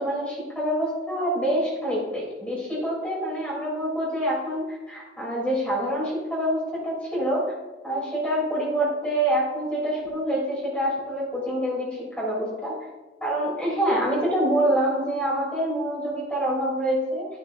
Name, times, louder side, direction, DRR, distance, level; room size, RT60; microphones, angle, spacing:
voice 1, 0.0-7.4 7.8-12.8 13.2-17.3, right 1 dB, 5° left, -5 dB, 3.1 m, -26 dB
10.5 x 9.5 x 2.6 m, 1.2 s
head